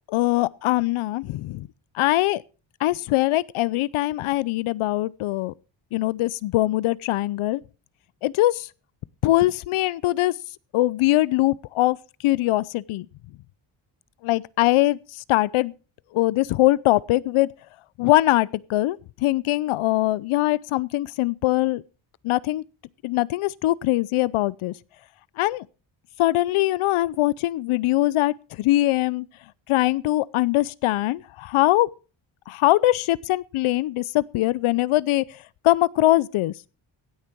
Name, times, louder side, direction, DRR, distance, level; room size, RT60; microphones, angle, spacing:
voice 1, 0.1-1.7 2.0-2.4 2.8-5.5 5.9-7.6 8.2-8.7 9.2-10.3 10.7-12.0 12.2-13.1 14.2-15.0 15.3-15.7 16.1-17.5 18.0-21.8 22.2-22.6 23.0-24.7 25.4-25.6 26.2-29.2 29.7-31.9 32.5-35.2 35.6-36.5, left 17 dB, 85° left, 0.7 m, -22 dB
16.5 x 8.9 x 4.6 m
cardioid pair, 115°, 48 cm